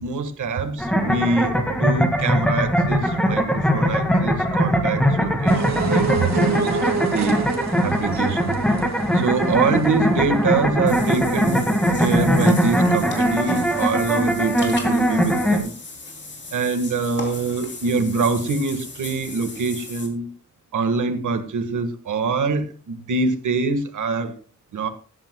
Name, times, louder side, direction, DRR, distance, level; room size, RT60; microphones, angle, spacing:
voice 1, 0.0-7.4 7.8-8.6 9.1-11.7 12.0-15.7 16.5-20.3 20.7-24.3 24.7-24.9, right 4 dB, 85° right, 8 dB, 1.6 m, -24 dB
sound 1, 0.8-15.6, equal, 5° left, 1.8 m, -21 dB
sound 2, 5.5-11.2, right 5 dB, 65° right, 2.2 m, -29 dB
Water / Bathtub (filling or washing), 10.9-20.1, left 3 dB, 40° left, 3.0 m, -37 dB
20.0 x 10.5 x 2.2 m, 0.38 s
wide cardioid pair, 140°, 30 cm